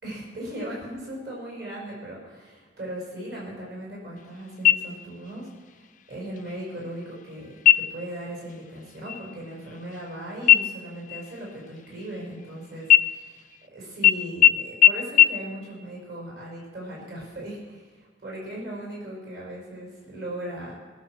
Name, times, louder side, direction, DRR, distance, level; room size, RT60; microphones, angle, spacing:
voice 1, 0.0-13.5 13.7-20.8, right 1 dB, 60° right, -4 dB, 5.4 m, -38 dB
sound 1, 4.6-5.3 5.7-5.8 6.4-6.9 7.6-8.1 8.5-8.8 9.0-10.2 10.5-12.5 12.9-13.6 14.0-14.1 14.4-14.5 14.8-14.9 15.2-15.3, left 10 dB, 45° left, 0.4 m, -19 dB
21.5 x 7.5 x 6.3 m, 1.5 s
head